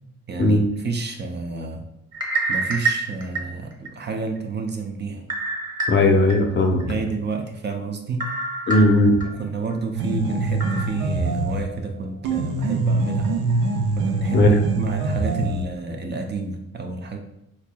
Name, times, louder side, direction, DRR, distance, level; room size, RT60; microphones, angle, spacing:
voice 1, 0.3-1.9 2.5-5.2 6.7-8.3 9.2-13.4 13.9-17.2, right 4 dB, 35° right, 3 dB, 0.5 m, -30 dB
sound 1, 2.1-3.9 4.4-4.5 5.3-6.3 6.8-6.9 8.2-9.3 9.7-9.8 10.6-10.9, right 3 dB, 15° right, 1.0 m, -26 dB
voice 2, 5.9-7.0 8.7-9.1 14.3-14.5, left 2 dB, 40° left, 4 dB, 0.6 m, -17 dB
sound 2, 9.9-11.8 12.2-15.8, right 3 dB, 85° right, 0.6 m, -24 dB
4.3 x 2.9 x 2.2 m, 0.84 s
cardioid pair, 90°, 30 cm